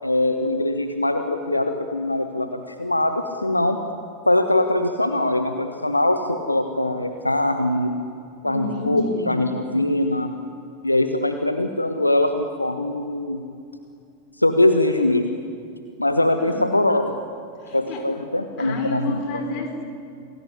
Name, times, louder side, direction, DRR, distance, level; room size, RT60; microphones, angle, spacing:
voice 1, 0.0-3.8 4.2-7.9 8.4-10.3 10.8-13.4 14.4-15.2 16.0-17.2 17.7-19.4, left 1 dB, 85° left, 7 dB, 1.5 m, -22 dB
voice 2, 8.4-9.3 16.4-16.7 17.6-18.1 18.6-19.8, left 2 dB, 40° left, 4 dB, 5.4 m, -30 dB
28.5 x 19.5 x 10.0 m, 2.5 s
figure-of-eight pair, 90°, 0 cm